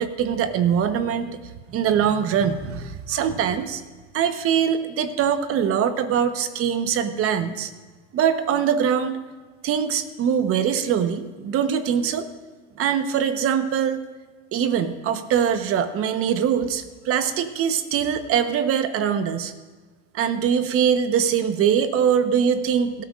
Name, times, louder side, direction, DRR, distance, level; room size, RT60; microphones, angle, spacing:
voice 1, 0.0-1.4 1.7-3.8 4.1-7.7 8.1-9.1 9.6-12.3 12.8-14.0 14.5-19.5 20.1-23.0, right 8 dB, 45° right, 10 dB, 1.1 m, -22 dB
18.0 x 12.5 x 2.5 m, 1.4 s
supercardioid pair, 110°, 32 cm